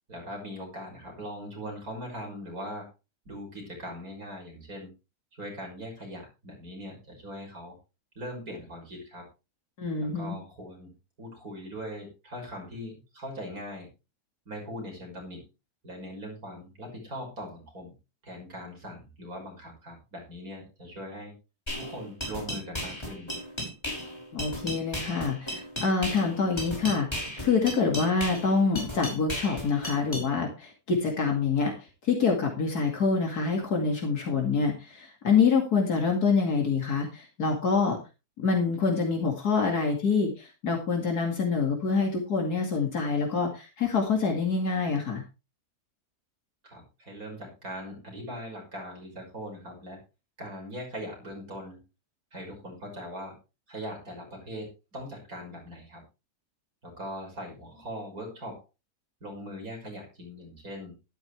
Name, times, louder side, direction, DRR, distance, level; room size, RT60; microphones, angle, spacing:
voice 1, 0.1-2.9 3.2-4.9 5.3-7.8 8.2-9.3 10.0-13.9 14.5-15.5 15.8-17.9 18.2-21.3 21.7-23.4 46.6-50.0 50.4-51.9 52.3-53.4 53.7-56.0 56.8-58.6 59.2-60.9, equal, 65° right, 0 dB, 6.5 m, -40 dB
voice 2, 9.8-10.3 24.3-31.7 32.0-38.0 38.4-45.2, left 5 dB, 80° left, 1 dB, 2.8 m, -26 dB
sound 1, 21.7-30.3, equal, 15° left, 5.9 m, -35 dB
13.0 x 12.0 x 3.3 m, 0.29 s
omnidirectional pair, 1.6 m